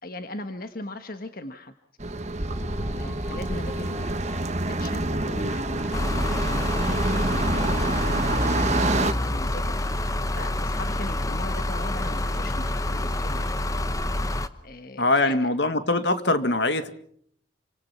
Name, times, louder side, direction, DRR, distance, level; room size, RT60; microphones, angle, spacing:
voice 1, 0.0-1.7 2.9-4.3 4.8-6.9 7.3-13.6 14.6-15.5, left 2 dB, 50° left, 7 dB, 1.5 m, -39 dB
sound 1, 2.0-9.1, right 2 dB, 35° right, 1.4 m, -27 dB
sound 2, 2.4-8.9, left 1 dB, ahead, 1.4 m, -45 dB
sound 3, 5.9-14.5, left 1 dB, 15° left, 1.0 m, -27 dB
voice 2, 15.0-16.9, left 2 dB, 65° left, 10 dB, 2.0 m, -22 dB
28.5 x 26.0 x 5.8 m, 0.64 s
head